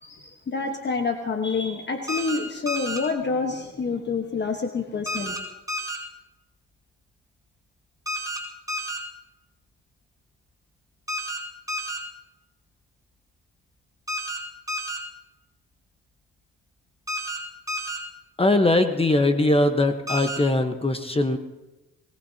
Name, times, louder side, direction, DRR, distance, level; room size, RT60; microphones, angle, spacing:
voice 1, 0.0-5.3, left 4 dB, 35° left, 4 dB, 1.3 m, -28 dB
sound 1, 2.1-2.4 2.7-3.0 5.1-5.4 5.7-6.0 8.1-8.4 8.7-9.0 11.1-11.4 11.7-12.0 14.1-14.4 14.7-15.0 17.1-17.4 17.7-18.0 20.1-20.4, equal, 10° right, 5.2 m, -30 dB
voice 2, 18.4-21.4, left 2 dB, 20° left, 7 dB, 1.1 m, -21 dB
21.5 x 19.0 x 2.9 m, 1.0 s
cardioid pair, 90°, 30 cm